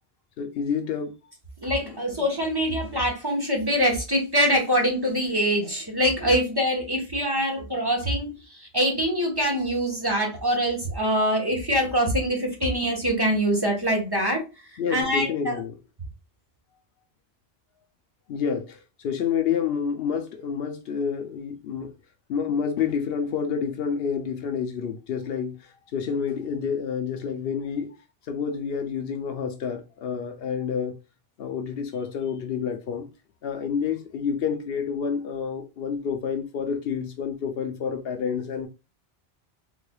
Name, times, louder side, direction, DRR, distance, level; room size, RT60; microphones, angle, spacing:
voice 1, 0.4-1.1 14.8-15.7 18.3-21.9 22.3-27.9 28.3-31.0 31.4-33.1 33.4-38.7, left 7 dB, 70° left, 0.8 m, -29 dB
voice 2, 1.6-14.4 14.7-15.6, equal, 25° right, 1.0 m, -24 dB
3.9 x 3.2 x 2.2 m
omnidirectional pair, 1.1 m